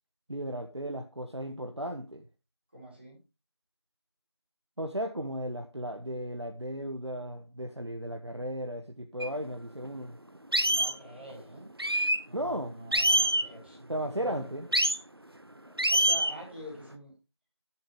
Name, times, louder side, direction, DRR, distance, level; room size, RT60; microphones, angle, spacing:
voice 1, 0.3-2.3 4.8-10.2 12.3-12.7 13.9-14.7, equal, 75° right, 1.4 m, -35 dB
voice 2, 2.7-3.2 10.6-11.7 12.2-14.6 15.6-17.2, right 1 dB, 25° right, 4.9 m, -46 dB
sound 1, 9.2-9.3 9.8-9.9 10.5-10.9 11.8-12.2 12.9-13.5 14.7-15.0 15.8-16.4, right 1 dB, 60° right, 1.0 m, -25 dB
13.5 x 7.8 x 3.3 m
figure-of-eight pair, 180°, 14 cm